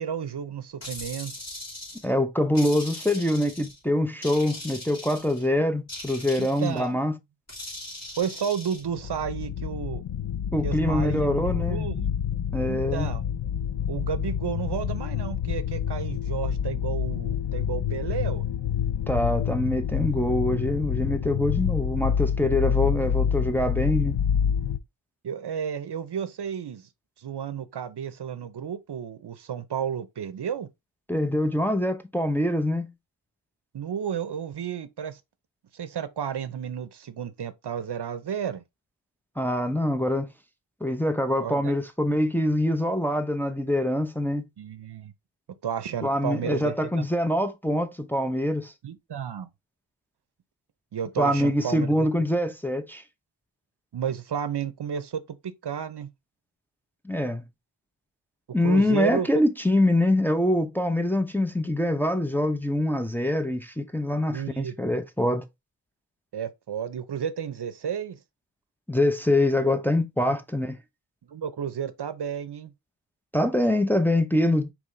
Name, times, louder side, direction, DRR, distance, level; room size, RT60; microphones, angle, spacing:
voice 1, 0.0-1.3 6.4-7.0 8.2-10.0 10.6-12.1 12.6-13.2 13.9-18.5 25.2-26.9 27.2-30.7 33.7-35.2 35.7-38.6 41.4-41.7 44.6-45.1 45.6-47.1 48.8-49.5 50.9-52.1 53.9-56.1 58.6-59.3 64.3-64.7 66.3-68.2 71.3-72.7, right 8 dB, 60° right, 0.6 m, -32 dB
sound 1, 0.8-2.1 2.5-3.8 4.2-5.5 5.9-6.9 7.5-8.8, left 1 dB, 35° left, 2.7 m, -40 dB
voice 2, 2.0-7.2 10.5-11.9 12.5-13.1 19.1-24.2 31.1-32.9 39.4-40.3 40.8-44.5 46.0-48.7 51.2-53.0 57.0-57.5 58.5-65.4 68.9-70.8 73.3-74.7, left 1 dB, 5° left, 0.6 m, -24 dB
sound 2, 8.9-24.8, left 8 dB, 60° left, 0.6 m, -28 dB
5.3 x 3.1 x 3.1 m
wide cardioid pair, 65°, 45 cm